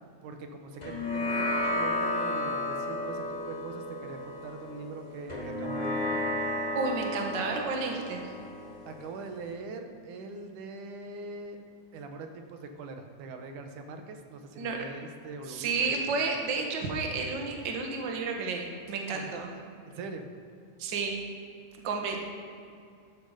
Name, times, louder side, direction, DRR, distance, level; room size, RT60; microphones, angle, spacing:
voice 1, 0.2-6.1 8.8-11.6 11.9-15.9 19.1-19.3 19.9-20.2, right 3 dB, 85° right, 5 dB, 2.6 m, -42 dB
sound 1, 0.8-9.5, left 1 dB, 25° left, 0.8 m, -33 dB
voice 2, 6.8-8.3 14.6-14.8 15.5-19.5 20.8-21.2 21.8-22.2, right 4 dB, 45° right, 2 dB, 1.8 m, -31 dB
14.0 x 12.0 x 5.1 m, 2.4 s
omnidirectional pair, 3.5 m